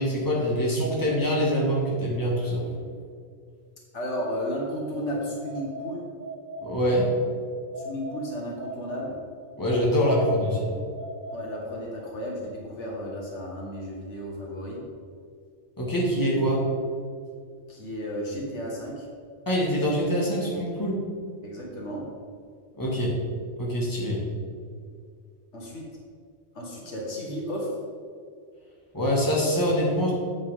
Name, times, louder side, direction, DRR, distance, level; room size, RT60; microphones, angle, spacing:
voice 1, 0.0-2.6 6.6-7.1 9.6-10.7 15.8-16.6 19.5-21.0 22.8-23.1 23.6-24.2 28.9-30.1, equal, 15° left, -5 dB, 2.0 m, -24 dB
voice 2, 3.9-6.0 7.8-9.2 11.3-14.8 17.7-19.1 21.4-22.0 25.5-25.9 26.5-27.7, equal, 80° left, -3 dB, 1.9 m, -33 dB
sound 1, 5.4-7.2 7.7-9.6 10.2-12.0, right 1 dB, 50° right, 0.9 m, -40 dB
8.7 x 8.1 x 3.7 m, 2.2 s
omnidirectional pair, 1.2 m